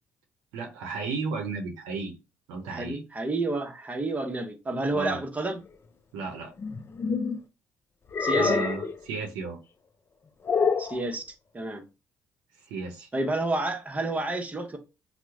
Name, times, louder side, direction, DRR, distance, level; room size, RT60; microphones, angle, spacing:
voice 1, 0.5-2.2 2.5-3.0 4.9-5.2 6.1-6.5 8.3-9.6 12.7-13.1, right 4 dB, 85° right, 0.6 m, -33 dB
voice 2, 2.7-5.6 8.2-8.6 10.8-11.2 11.5-11.8 13.1-14.8, right 2 dB, 20° right, 0.8 m, -30 dB
sound 1, 6.6-7.4 8.1-9.0 10.5-11.0, left 5 dB, 35° left, 0.4 m, -26 dB
2.9 x 2.1 x 3.5 m
hypercardioid pair, 60°, 7 cm